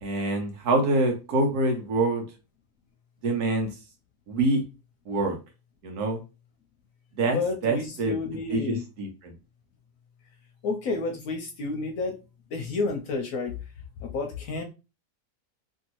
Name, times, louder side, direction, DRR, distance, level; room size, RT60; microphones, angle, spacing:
voice 1, 0.0-2.2 3.2-3.7 4.3-4.6 5.1-5.4 5.8-6.2 7.2-7.4 7.6-8.2 8.5-9.3, right 2 dB, 80° right, 1.3 m, -25 dB
voice 2, 7.3-8.8 10.6-12.2 12.5-13.6 14.0-14.6, left 3 dB, 70° left, 0.9 m, -30 dB
2.9 x 2.6 x 2.9 m
omnidirectional pair, 1.6 m